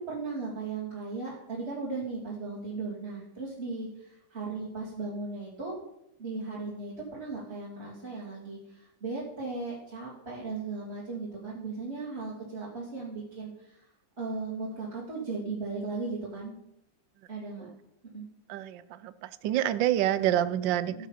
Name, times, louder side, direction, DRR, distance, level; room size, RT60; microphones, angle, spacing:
voice 1, 0.1-5.7 6.2-13.8 14.2-16.5 17.3-17.7 18.1-18.3 20.9-21.1, right 3 dB, 35° right, -6 dB, 3.0 m, -37 dB
voice 2, 18.5-21.1, right 12 dB, 80° right, 15 dB, 1.3 m, -28 dB
13.0 x 7.4 x 5.8 m, 0.80 s
omnidirectional pair, 2.0 m